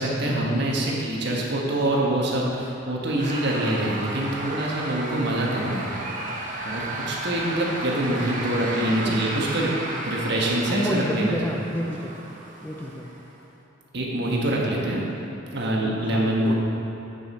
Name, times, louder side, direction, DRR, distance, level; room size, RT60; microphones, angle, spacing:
voice 1, 0.0-6.0 6.6-9.7 10.1-11.5 13.9-15.0 15.5-16.5, right 1 dB, 65° right, -3 dB, 1.3 m, -25 dB
sound 1, 3.2-13.3, right 2 dB, 45° right, 0.8 m, -34 dB
voice 2, 10.7-12.1 12.6-13.1 16.0-16.5, equal, 10° left, 0 dB, 0.5 m, -29 dB
9.0 x 5.3 x 4.2 m, 2.9 s
head